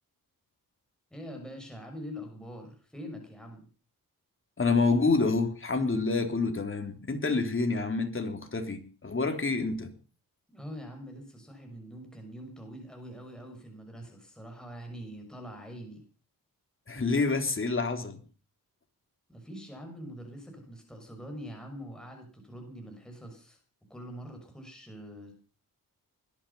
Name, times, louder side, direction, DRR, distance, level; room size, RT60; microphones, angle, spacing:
voice 1, 1.1-3.7 10.5-16.0 19.3-23.6 23.9-25.4, equal, ahead, 3 dB, 6.2 m, -44 dB
voice 2, 4.6-9.9 16.9-18.2, left 3 dB, 35° left, 5 dB, 3.6 m, -28 dB
20.5 x 12.5 x 5.6 m, 0.39 s
cardioid pair, 100°, 37 cm